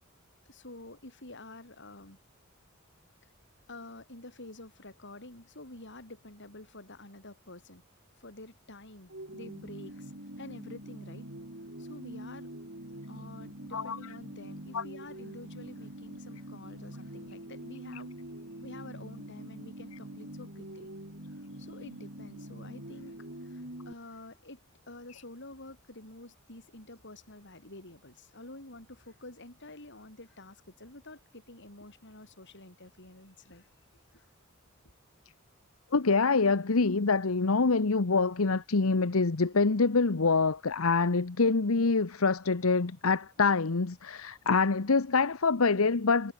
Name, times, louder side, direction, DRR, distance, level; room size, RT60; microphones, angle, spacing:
voice 1, 0.4-2.2 3.7-7.8 8.2-10.1 10.4-11.3 11.8-12.5 13.1-18.1 18.6-20.9 21.6-33.7 34.1-34.3, left 2 dB, 60° left, 7.7 m, -49 dB
sound 1, 9.1-23.9, right 1 dB, 60° right, 6.4 m, -44 dB
voice 2, 35.9-46.3, left 4 dB, 80° left, 1.0 m, -25 dB
head